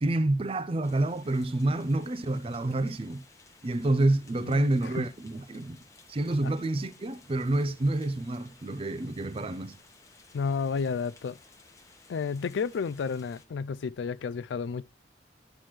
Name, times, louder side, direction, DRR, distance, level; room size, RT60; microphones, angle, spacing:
voice 1, 0.0-3.2 3.6-5.8 6.1-9.8, right 2 dB, 30° right, 0.5 m, -28 dB
sound 1, 0.8-13.5, left 3 dB, 15° left, 1.1 m, -57 dB
voice 2, 10.3-11.4 12.1-14.8, left 5 dB, 75° left, 0.4 m, -31 dB
11.5 x 5.9 x 3.1 m
head